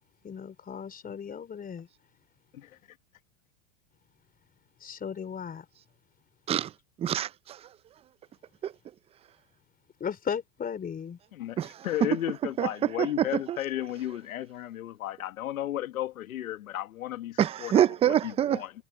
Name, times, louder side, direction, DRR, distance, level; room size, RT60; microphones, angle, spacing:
voice 1, 0.0-1.9 4.8-5.7 10.0-11.2, left 7 dB, 20° left, 4.2 m, -36 dB
voice 2, 7.0-7.7 8.6-8.7 11.6-13.9 17.4-18.6, right 10 dB, 15° right, 0.4 m, -27 dB
voice 3, 11.8-17.7 18.1-18.2 18.5-18.7, left 13 dB, 90° left, 1.6 m, -34 dB
hypercardioid pair, 120°, 41 cm